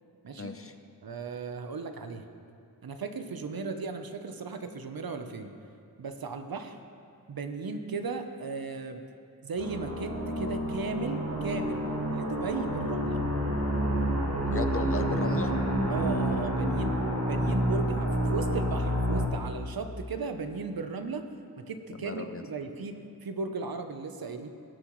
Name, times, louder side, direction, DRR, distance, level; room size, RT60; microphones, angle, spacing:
voice 1, 0.3-0.8 14.5-15.6 21.9-22.4, left 4 dB, 35° left, 8 dB, 0.7 m, -36 dB
voice 2, 1.0-2.2 2.8-5.5 6.0-6.8 7.3-9.0 9.4-13.2 15.9-16.9 17.2-21.2 21.7-24.5, right 4 dB, 60° right, 7 dB, 0.9 m, -36 dB
sound 1, 9.6-19.3, equal, 35° right, 1.7 m, -29 dB
19.5 x 7.9 x 3.2 m, 2.5 s
cardioid pair, 60°, 40 cm